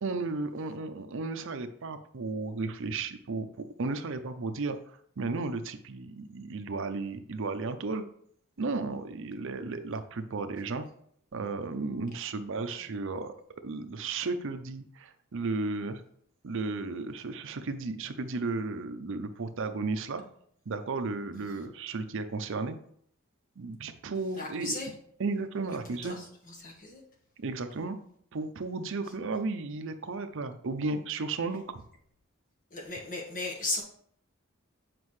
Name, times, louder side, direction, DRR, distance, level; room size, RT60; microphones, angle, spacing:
voice 1, 0.0-3.5 3.8-8.0 8.6-10.8 11.3-13.3 13.6-16.0 16.4-20.2 20.7-22.8 23.6-24.7 25.2-26.2 27.4-28.0 28.3-31.6, right 3 dB, 65° right, 9 dB, 0.6 m, -34 dB
voice 2, 24.3-24.9 25.7-27.0 32.7-33.8, left 2 dB, 40° left, 0 dB, 1.4 m, -36 dB
7.6 x 5.1 x 3.2 m, 0.65 s
head